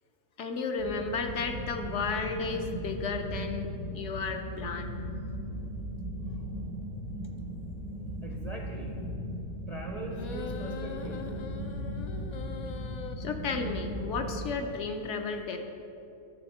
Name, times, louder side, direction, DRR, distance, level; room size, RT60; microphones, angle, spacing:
voice 1, 0.4-5.0 13.2-15.6, left 4 dB, 65° left, 5 dB, 0.8 m, -33 dB
sound 1, 0.8-14.5, equal, 90° right, 2.0 m, -37 dB
voice 2, 8.2-9.0 9.7-11.2, right 2 dB, 40° right, 0 dB, 0.5 m, -41 dB
sound 2, 10.1-13.1, left 5 dB, 80° left, 0.3 m, -42 dB
10.5 x 3.5 x 7.2 m, 2.8 s
omnidirectional pair, 1.4 m